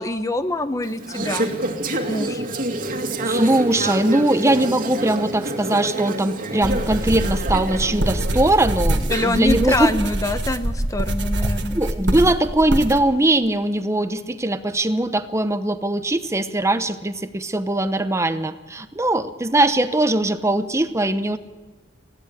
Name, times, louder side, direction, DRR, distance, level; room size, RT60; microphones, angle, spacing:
voice 1, 0.0-1.5 2.1-2.4 9.1-11.8, left 1 dB, 20° left, 10 dB, 0.8 m, -24 dB
Conversation / Chatter, 0.8-9.7, right 2 dB, 45° right, 2.3 m, -28 dB
voice 2, 3.2-9.9 11.7-21.4, right 1 dB, 15° right, 11 dB, 0.9 m, -21 dB
sound 1, 6.6-13.0, right 1 dB, 65° right, 1.7 m, -24 dB
20.0 x 15.5 x 8.3 m, 1.3 s
head